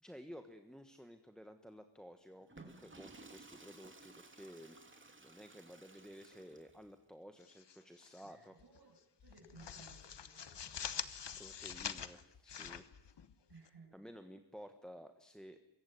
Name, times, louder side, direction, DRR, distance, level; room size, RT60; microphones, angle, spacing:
voice 1, 0.0-4.8 5.2-8.6 11.4-13.1 13.9-15.6, equal, ahead, 8 dB, 1.3 m, -54 dB
Water / Toilet flush, 2.4-6.9, right 3 dB, 25° right, 3.0 m, -57 dB
sound 1, 7.4-8.3 8.6-8.8 9.2-13.7, left 8 dB, 70° left, 1.4 m, -45 dB
voice 2, 8.1-9.0 9.2-11.0 13.5-13.9, right 4 dB, 60° right, 3 dB, 7.9 m, -60 dB
24.0 x 23.0 x 9.4 m, 0.87 s
wide cardioid pair, 160°, 44 cm